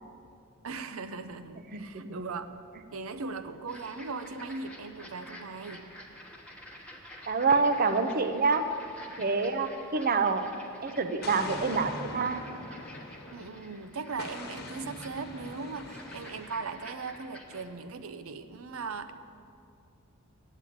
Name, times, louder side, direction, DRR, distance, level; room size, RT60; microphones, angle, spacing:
voice 1, 0.6-2.5 2.9-5.8 13.3-19.1, right 4 dB, 90° right, 10 dB, 0.7 m, -39 dB
sound 1, 3.7-17.7, equal, 5° left, 1.1 m, -49 dB
voice 2, 7.3-8.6 9.2-10.5 10.8-12.4, right 4 dB, 45° right, 9 dB, 0.6 m, -26 dB
Explosion, 11.2-13.7 14.2-16.7, left 2 dB, 50° left, 1.2 m, -42 dB
8.9 x 8.2 x 8.5 m, 2.5 s
head